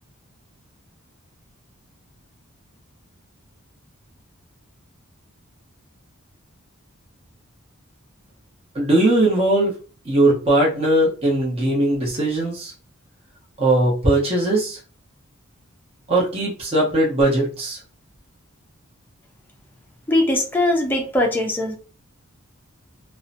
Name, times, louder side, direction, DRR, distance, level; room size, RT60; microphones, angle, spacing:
voice 1, 8.7-9.7 10.1-12.7 13.6-14.8 16.1-17.8, right 1 dB, 30° right, -4 dB, 0.8 m, -19 dB
voice 2, 20.1-21.8, left 1 dB, 10° left, 0 dB, 0.4 m, -20 dB
2.6 x 2.1 x 2.5 m, 0.36 s
head